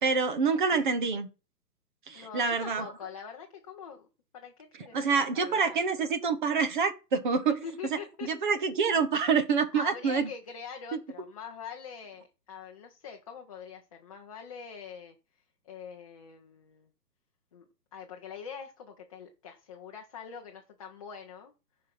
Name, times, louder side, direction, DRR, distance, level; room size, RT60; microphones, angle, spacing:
voice 1, 0.0-1.3 2.1-2.9 4.9-7.6 8.2-10.3 10.9-11.0, right 5 dB, 30° right, 1.1 m, -27 dB
voice 2, 2.1-4.1 4.3-5.0 5.3-5.8 7.6-8.3 9.7-15.1 15.6-16.9 17.5-17.6 17.9-21.5, left 7 dB, 20° left, 0.8 m, -44 dB
14.0 x 5.3 x 5.8 m
hypercardioid pair, 165°, 48 cm